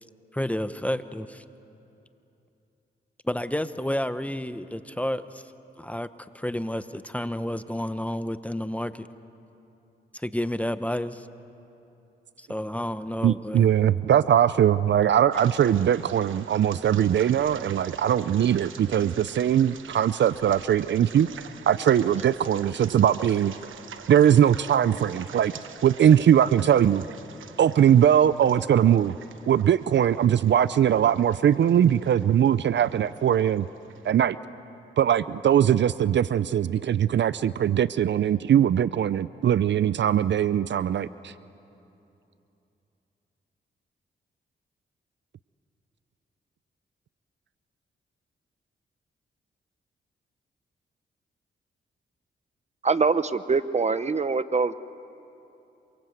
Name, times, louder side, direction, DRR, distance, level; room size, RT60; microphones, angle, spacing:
voice 1, 0.3-1.4 3.2-5.4 5.8-6.1 6.3-9.1 10.1-11.3 12.4-13.7, left 1 dB, 5° left, 12 dB, 1.0 m, -30 dB
voice 2, 13.2-21.3 21.7-23.5 24.1-25.5 25.8-27.0 27.6-29.1 29.5-33.7 34.0-34.4 35.0-41.3, right 9 dB, 65° right, 16 dB, 0.5 m, -21 dB
sound 1, 15.3-34.1, right 8 dB, 80° right, 1.1 m, -45 dB
voice 3, 52.8-54.8, right 4 dB, 35° right, 14 dB, 0.9 m, -24 dB
27.5 x 24.5 x 8.0 m, 2.8 s
cardioid pair, 65°, 20 cm